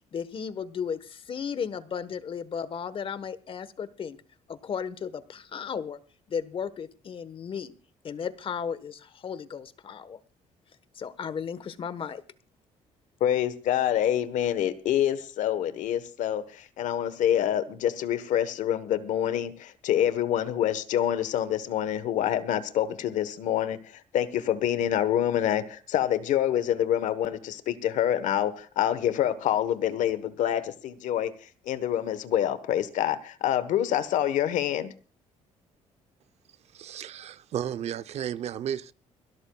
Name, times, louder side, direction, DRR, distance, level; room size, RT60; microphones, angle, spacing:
voice 1, 0.1-4.2 4.5-6.0 6.3-7.7 8.0-10.2 10.9-12.2, left 7 dB, 45° left, 1.2 m, -35 dB
voice 2, 13.2-31.3 31.7-34.9, left 11 dB, 75° left, 1.2 m, -26 dB
voice 3, 36.7-38.9, right 9 dB, 55° right, 0.7 m, -33 dB
29.5 x 12.5 x 2.3 m
cardioid pair, 115°, 13 cm